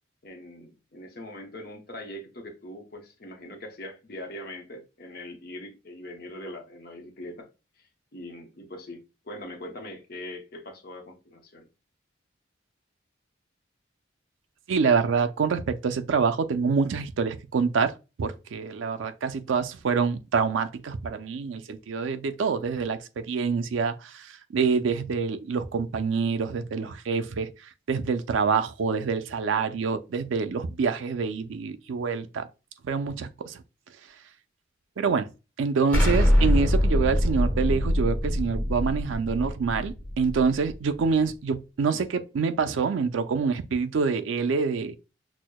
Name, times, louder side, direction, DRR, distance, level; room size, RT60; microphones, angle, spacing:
voice 1, 0.2-7.5 7.8-11.7, left 1 dB, 50° left, 0.8 m, -42 dB
voice 2, 14.7-17.9 18.2-27.5 27.9-32.5 32.8-33.6 35.0-35.3 35.6-45.0, right 5 dB, 85° right, 0.4 m, -26 dB
Explosion, 35.9-40.8, equal, 10° left, 1.1 m, -24 dB
6.2 x 2.1 x 2.2 m
head